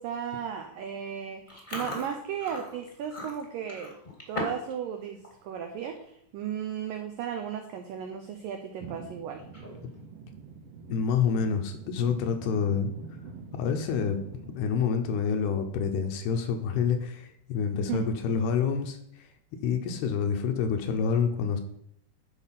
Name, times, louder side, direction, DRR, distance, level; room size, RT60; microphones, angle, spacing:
voice 1, 0.0-4.0 4.3-9.5 17.9-18.1, right 8 dB, 85° right, 5 dB, 1.9 m, -35 dB
Chewing mastication, 1.5-4.7 5.0-5.3 5.8-6.0 6.8-6.9 7.1-7.4 7.8-7.9 9.4-10.0, left 1 dB, 25° left, 0.9 m, -38 dB
sound 1, 8.8-14.7, right 5 dB, 70° right, 2.3 m, -45 dB
voice 2, 10.9-12.9 13.5-14.2 14.5-19.3 19.6-21.6, left 6 dB, 75° left, 5 dB, 2.6 m, -27 dB
11.0 x 4.9 x 5.8 m, 0.72 s
omnidirectional pair, 5.0 m